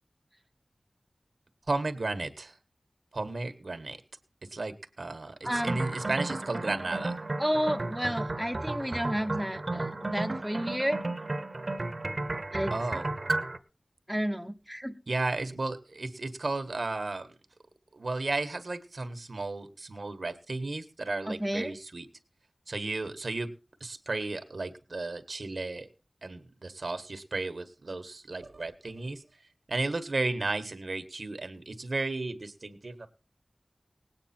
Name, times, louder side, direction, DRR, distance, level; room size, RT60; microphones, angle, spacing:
voice 1, 1.7-2.6 3.1-4.0 4.5-7.2 12.7-13.1 15.1-17.3 17.9-22.1 22.7-23.5 23.8-25.9 26.2-29.2 29.7-33.1, right 3 dB, 70° right, 9 dB, 1.5 m, -34 dB
sound 1, 5.4-13.6, right 2 dB, 50° right, 1.1 m, -33 dB
voice 2, 5.5-5.8 7.4-11.0 12.5-12.7 14.1-15.0 21.3-21.7, equal, ahead, 5 dB, 0.9 m, -31 dB
18.5 x 9.0 x 4.4 m, 0.34 s
wide cardioid pair, 70°, 0 cm